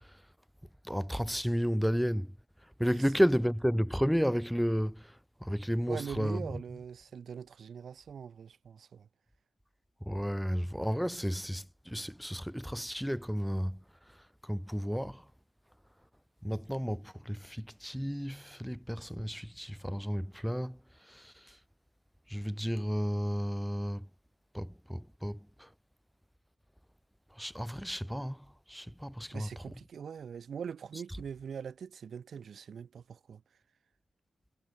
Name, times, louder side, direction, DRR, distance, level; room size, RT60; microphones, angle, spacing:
voice 1, 0.9-2.3 2.8-4.9 5.4-6.4 10.1-11.6 11.9-13.8 14.5-15.1 16.4-17.0 17.3-20.8 22.3-24.0 24.5-25.4 27.4-28.4 28.7-29.5, equal, ahead, 1.4 m, -32 dB
voice 2, 2.9-3.2 5.9-9.1 29.3-33.4, right 7 dB, 70° right, 5.9 m, -42 dB
cardioid pair, 80°, 0 cm